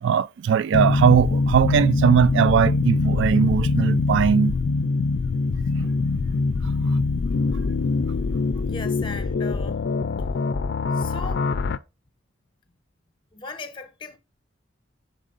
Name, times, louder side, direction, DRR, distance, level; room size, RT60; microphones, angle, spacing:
voice 1, 0.0-4.6 6.9-7.0, right 7 dB, 60° right, 0.3 m, -19 dB
sound 1, 0.7-11.8, left 3 dB, 55° left, 0.4 m, -23 dB
voice 2, 8.6-9.8 10.9-11.5 13.3-14.2, left 3 dB, 25° left, 0.9 m, -38 dB
6.3 x 4.3 x 3.8 m
head